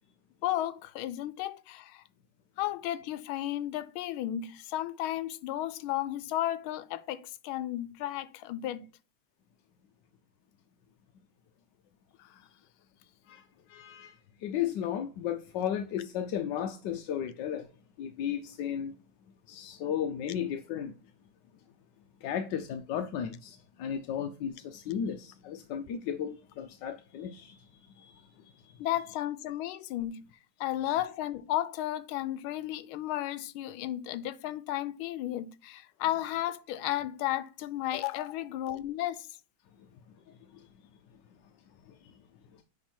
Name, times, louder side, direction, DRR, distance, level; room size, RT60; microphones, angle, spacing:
voice 1, 0.4-2.0 2.6-8.8 12.2-12.4 28.8-30.2 30.6-39.3, left 13 dB, 90° left, 1.4 m, -33 dB
voice 2, 13.3-14.2 14.4-17.7 18.0-18.9 19.5-20.9 22.2-27.7 28.0-28.3 28.6-28.8 40.5-40.7 41.9-42.0 42.5-42.6, left 9 dB, 70° left, 1.2 m, -35 dB
9.7 x 3.6 x 4.4 m
omnidirectional pair, 2.2 m